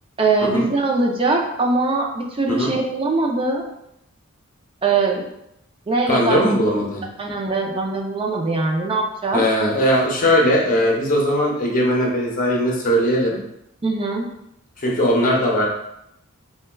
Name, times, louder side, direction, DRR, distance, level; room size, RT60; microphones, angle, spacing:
voice 1, 0.2-3.6 4.8-5.3 5.9-6.4 7.2-9.4 13.8-14.3, right 3 dB, 25° right, 1 dB, 0.4 m, -21 dB
voice 2, 6.1-7.0 9.3-13.4 14.8-15.7, equal, 40° left, -2 dB, 0.7 m, -19 dB
4.1 x 2.2 x 2.2 m, 0.79 s
head